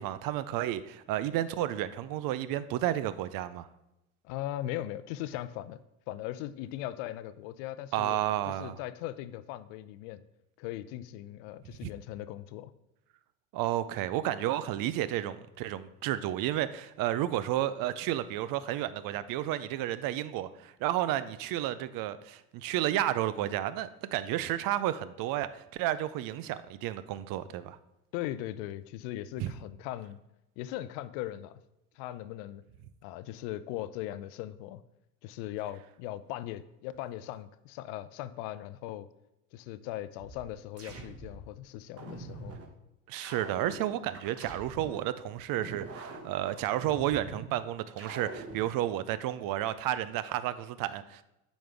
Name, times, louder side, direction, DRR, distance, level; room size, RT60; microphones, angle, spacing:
voice 1, 0.0-3.7 7.9-8.8 11.8-11.9 13.5-27.8 29.4-29.5 43.1-51.2, right 13 dB, 55° right, 15 dB, 0.6 m, -32 dB
voice 2, 4.2-5.8 6.1-10.2 10.6-12.7 28.1-30.2 30.6-31.6 32.0-32.6 33.0-34.8 35.2-39.1 39.5-42.5, left 13 dB, 65° left, 15 dB, 0.6 m, -39 dB
sound 1, 40.2-41.5 42.0-42.7 43.2-45.1 45.6-47.5 48.0-48.7, right 3 dB, 35° right, 1.5 m, -44 dB
8.6 x 5.2 x 3.5 m, 0.91 s
hypercardioid pair, 75°, 43 cm